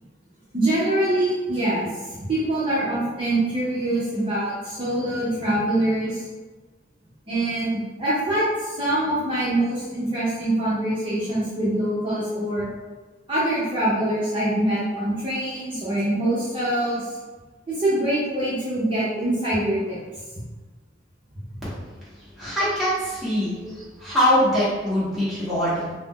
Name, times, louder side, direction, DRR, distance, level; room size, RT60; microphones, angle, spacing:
voice 1, 0.5-6.3 7.3-12.7 13.3-17.1 17.7-20.0, right 1 dB, 30° right, -11 dB, 0.6 m, -24 dB
voice 2, 22.4-25.9, equal, ahead, -12 dB, 1.1 m, -23 dB
2.5 x 2.1 x 3.5 m, 1.3 s
head